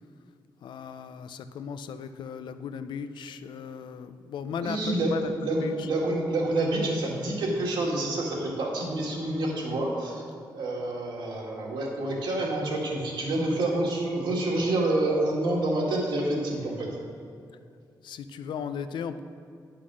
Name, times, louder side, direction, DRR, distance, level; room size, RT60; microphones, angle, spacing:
voice 1, 0.6-5.9 18.0-19.2, left 7 dB, 75° left, 11 dB, 0.5 m, -36 dB
voice 2, 4.6-5.1 5.4-10.2 10.5-17.0, right 2 dB, 75° right, -2 dB, 2.1 m, -28 dB
10.0 x 5.7 x 6.2 m, 2.4 s
wide cardioid pair, 175°, 8 cm